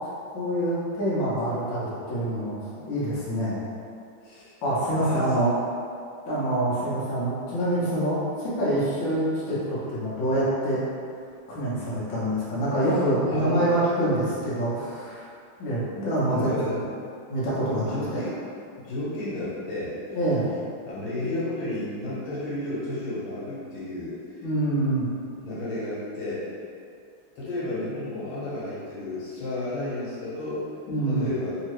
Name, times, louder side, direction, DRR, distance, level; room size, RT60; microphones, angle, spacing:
voice 1, 0.3-2.6 2.8-3.6 4.6-5.5 6.2-10.8 11.5-15.2 15.6-16.8 17.3-18.2 20.1-20.4 24.4-25.1 30.9-31.3, right 1 dB, 65° left, -10 dB, 1.7 m, -26 dB
voice 2, 4.2-4.5 5.0-5.5 13.3-13.7 16.3-16.8 17.9-18.3 18.8-20.0 20.8-24.1 25.4-26.5 27.4-30.6 31.1-31.6, left 2 dB, 85° left, -10 dB, 1.9 m, -32 dB
4.1 x 2.8 x 3.1 m, 2.4 s
omnidirectional pair, 2.3 m